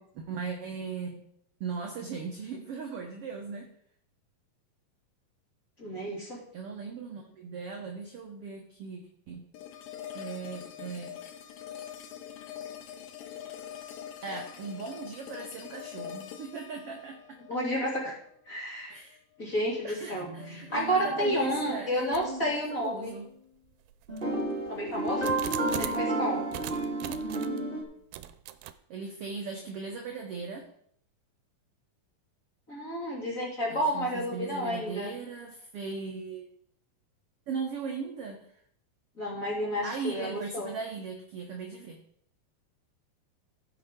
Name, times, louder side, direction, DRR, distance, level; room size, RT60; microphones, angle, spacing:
voice 1, 0.2-1.2 1.6-3.7 6.5-9.0 9.3-9.4 10.1-11.2 14.2-17.4 18.9-19.2 19.8-23.3 27.0-27.5 28.9-30.7 33.7-36.5 37.5-38.4 39.8-42.0, right 5 dB, 65° right, 1 dB, 1.4 m, -38 dB
voice 2, 5.8-6.4 17.5-18.1 18.5-18.9 19.4-23.1 24.7-25.4 25.8-26.5 32.7-35.1 39.2-40.7, equal, 25° left, -5 dB, 2.8 m, -31 dB
sound 1, 9.5-18.6, left 10 dB, 85° left, 2.7 m, -43 dB
sound 2, 20.2-22.6 24.1-27.8, right 2 dB, 20° right, 1.8 m, -32 dB
sound 3, 22.1-22.5 23.1-23.2 23.9-26.1 26.5-27.6 28.1-28.7, right 13 dB, 90° right, 2.4 m, -40 dB
15.0 x 6.2 x 3.7 m, 0.67 s
omnidirectional pair, 4.0 m